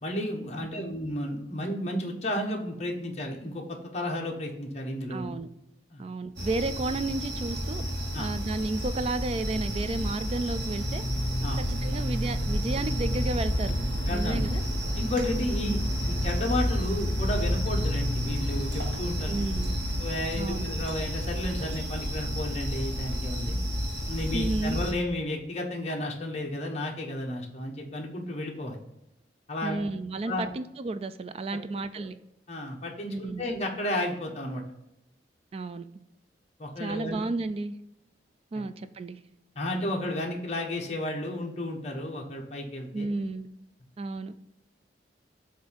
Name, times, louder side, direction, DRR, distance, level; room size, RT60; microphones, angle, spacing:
voice 1, 0.0-5.4 5.9-6.1 8.1-8.3 11.4-11.6 14.1-14.4 14.9-15.8 16.1-19.3 20.0-23.6 24.1-28.8 29.5-29.8 30.2-30.5 31.5-31.6 32.0-32.1 32.5-34.6 36.6-37.2 39.5-43.1, left 1 dB, 35° left, 0 dB, 1.1 m, -32 dB
voice 2, 5.1-5.5 6.0-7.8 8.2-11.0 11.7-13.8 14.1-14.6 15.6-15.8 19.3-19.8 20.4-20.7 24.3-24.8 29.6-32.2 33.1-33.5 35.5-35.8 36.8-37.8 38.5-39.2 42.9-43.5 44.0-44.3, right 2 dB, 35° right, 11 dB, 0.3 m, -32 dB
sound 1, 6.4-24.9, equal, 80° right, 1.4 m, -30 dB
7.7 x 2.7 x 5.1 m, 0.85 s
head